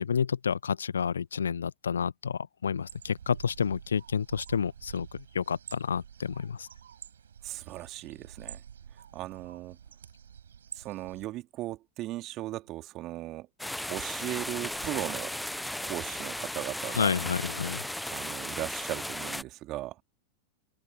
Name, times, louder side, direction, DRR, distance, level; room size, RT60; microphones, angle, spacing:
voice 1, 0.0-6.7 16.9-17.8, left 7 dB, 70° left, 1.2 m, -30 dB
sound 1, 2.8-11.2, right 8 dB, 65° right, 5.3 m, -48 dB
voice 2, 7.4-8.6 9.1-9.8 10.7-13.5 13.9-15.3 15.8-17.1 18.1-20.0, right 16 dB, 35° right, 2.7 m, -37 dB
sound 2, 13.6-19.4, left 1 dB, 5° left, 0.8 m, -36 dB
open air
figure-of-eight pair, 90°, 0 cm